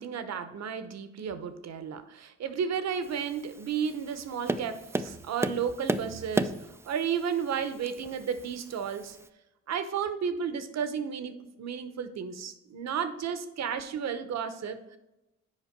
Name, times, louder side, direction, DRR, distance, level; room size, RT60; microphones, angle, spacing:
voice 1, 0.0-6.5 6.8-9.2 9.7-15.0, right 7 dB, 60° right, 11 dB, 0.9 m, -33 dB
Tap, 3.0-9.3, right 2 dB, 10° right, 0.3 m, -35 dB
7.4 x 5.2 x 5.2 m, 0.96 s
cardioid pair, 90°, 30 cm